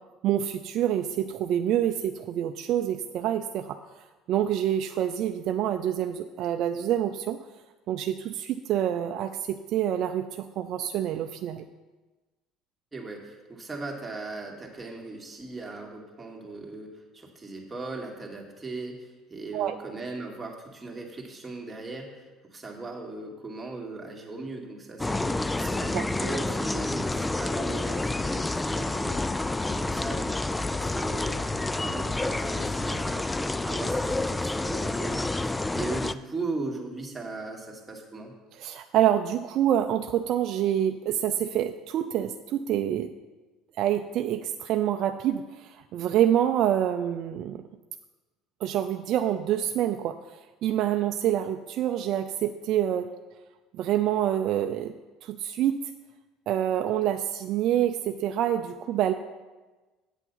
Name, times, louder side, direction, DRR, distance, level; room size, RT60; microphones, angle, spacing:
voice 1, 0.2-7.4 7.9-11.6 19.5-19.8 25.9-26.1 38.6-43.1 43.8-47.6 48.6-53.1 53.7-54.9 55.2-55.8 56.5-59.1, right 11 dB, 60° right, 7 dB, 0.5 m, -27 dB
voice 2, 12.9-25.4 25.7-29.3 29.6-33.3 33.6-38.3, right 3 dB, 15° right, -1 dB, 2.2 m, -38 dB
sound 1, 25.0-36.1, left 2 dB, 15° left, 0.4 m, -29 dB
8.2 x 8.1 x 5.7 m, 1.2 s
supercardioid pair, 85°, 0 cm